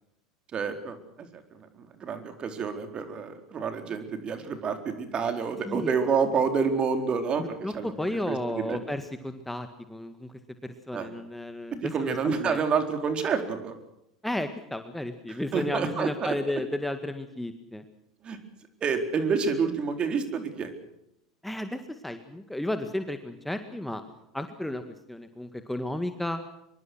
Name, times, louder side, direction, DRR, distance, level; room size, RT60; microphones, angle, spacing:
voice 1, 0.5-1.0 1.3-7.9 8.3-8.8 10.9-11.1 11.8-13.7 15.5-16.3 18.2-18.4 18.8-20.7, right 5 dB, 35° right, 6 dB, 4.2 m, -28 dB
voice 2, 7.4-10.3 10.6-12.6 14.2-17.8 21.4-24.0 24.3-24.8 25.1-26.4, left 1 dB, 5° left, 8 dB, 1.9 m, -33 dB
24.5 x 23.0 x 6.3 m, 0.82 s
figure-of-eight pair, 80°, 3 cm